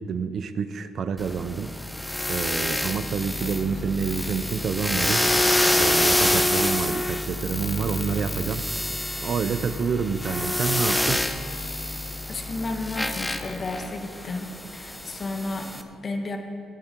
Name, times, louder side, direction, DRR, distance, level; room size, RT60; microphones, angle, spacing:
voice 1, 0.0-1.7 2.3-5.2 5.7-8.6 9.2-11.2, right 6 dB, 60° right, 12 dB, 0.6 m, -28 dB
sound 1, 1.2-15.8, left 1 dB, 5° left, 0.8 m, -27 dB
voice 2, 12.3-16.4, left 3 dB, 40° left, 4 dB, 1.5 m, -32 dB
16.5 x 8.8 x 4.6 m, 2.5 s
cardioid pair, 90°, 0 cm